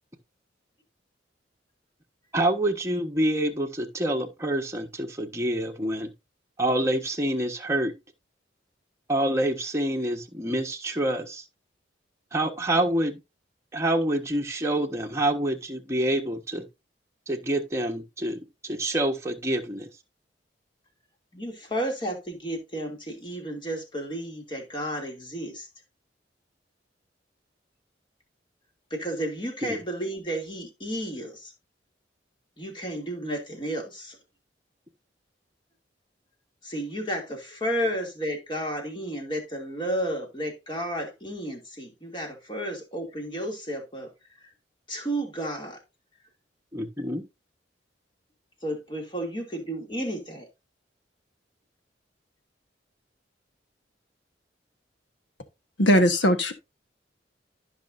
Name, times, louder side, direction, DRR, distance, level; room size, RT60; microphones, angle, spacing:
voice 1, 2.3-6.1 6.6-7.9 9.1-11.4 12.3-13.2 13.7-16.7 17.3-19.9 29.6-29.8 46.7-47.2, right 1 dB, 15° right, 1.3 m, -27 dB
voice 2, 21.3-25.7 28.9-31.5 32.6-34.2 36.6-44.1 44.9-45.8 48.6-50.5, right 1 dB, 25° left, 2.7 m, -32 dB
voice 3, 55.8-56.5, equal, 85° left, 1.3 m, -19 dB
14.5 x 5.8 x 2.6 m
head